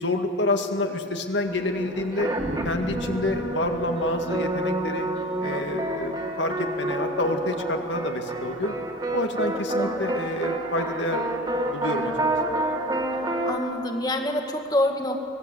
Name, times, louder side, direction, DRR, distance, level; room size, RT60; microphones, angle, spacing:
voice 1, 0.0-2.3 2.6-5.1 5.4-8.7 9.1-11.3 11.7-12.1, left 2 dB, 80° left, 4 dB, 2.1 m, -28 dB
sound 1, 1.5-13.6, right 1 dB, 25° right, 2.3 m, -28 dB
voice 2, 9.5-10.2 13.4-15.2, left 1 dB, 20° left, 4 dB, 1.9 m, -27 dB
25.0 x 20.0 x 8.2 m, 2.7 s
head